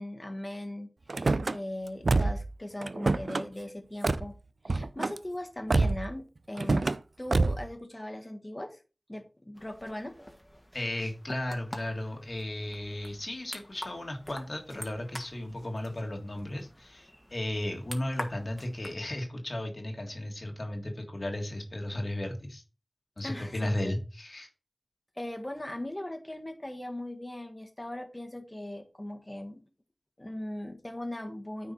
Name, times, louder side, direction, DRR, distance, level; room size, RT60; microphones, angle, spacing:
voice 1, 0.0-4.3 4.7-6.9 7.2-8.8 9.1-10.2 23.2-23.9 25.2-29.6 30.2-31.7, left 1 dB, 25° left, 6 dB, 1.5 m, -39 dB
Car / Slam, 1.1-1.6 2.0-2.5 2.8-3.4 4.0-4.3 4.7-5.2 5.7-6.1 6.6-7.0 7.3-7.7, right 3 dB, 80° right, 0.4 m, -26 dB
tabletennis outdoors, 9.5-19.0, equal, 10° left, 1.7 m, -46 dB
voice 2, 10.7-22.6 23.2-24.5, left 1 dB, 60° left, 3 dB, 1.8 m, -35 dB
9.4 x 4.7 x 4.2 m, 0.33 s
wide cardioid pair, 40°, 0 cm